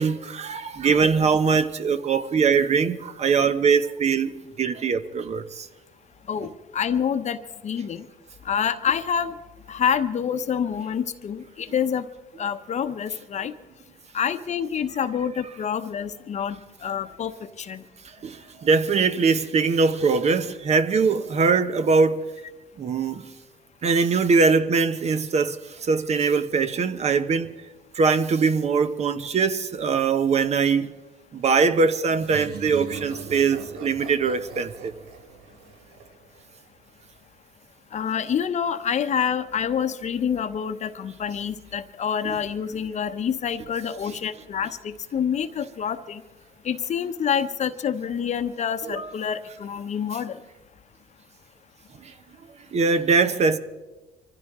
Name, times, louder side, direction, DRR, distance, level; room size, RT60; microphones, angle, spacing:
voice 1, 0.0-4.3 4.6-5.7 18.2-22.3 22.8-23.2 23.8-27.5 27.9-30.9 31.3-34.9 42.2-42.3 48.8-49.1 52.0-52.1 52.7-53.6, right 5 dB, 40° right, 0.8 m, -22 dB
voice 2, 6.3-7.4 7.6-8.1 8.4-9.3 9.7-12.1 12.4-13.5 14.1-17.8 37.9-46.2 46.6-50.4, left 7 dB, 45° left, 0.9 m, -27 dB
sound 1, 32.1-36.7, right 5 dB, 70° right, 1.6 m, -40 dB
25.0 x 15.0 x 3.7 m
cardioid pair, 110°, 17 cm